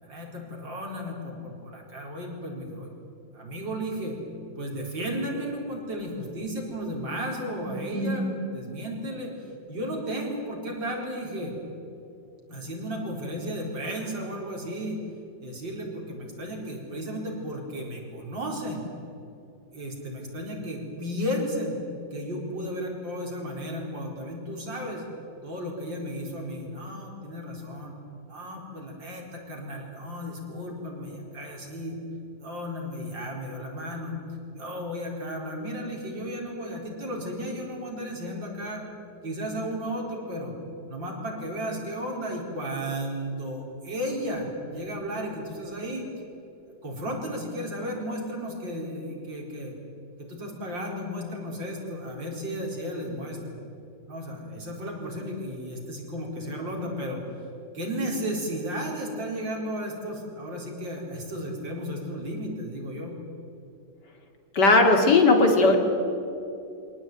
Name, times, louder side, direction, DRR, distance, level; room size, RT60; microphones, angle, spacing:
voice 1, 0.0-2.9 3.3-4.2 4.6-9.4 9.7-11.5 12.5-15.0 15.4-18.8 19.7-21.8 22.1-25.0 25.4-28.0 28.3-32.0 32.4-34.2 34.5-38.9 39.2-40.5 40.9-46.1 46.8-49.7 50.2-53.6 54.1-57.2 57.7-63.1, equal, 70° right, -1 dB, 5.2 m, -34 dB
voice 2, 7.9-8.3 64.5-65.8, left 3 dB, 60° left, 3 dB, 3.2 m, -18 dB
24.5 x 18.0 x 9.2 m, 2.8 s
omnidirectional pair, 2.1 m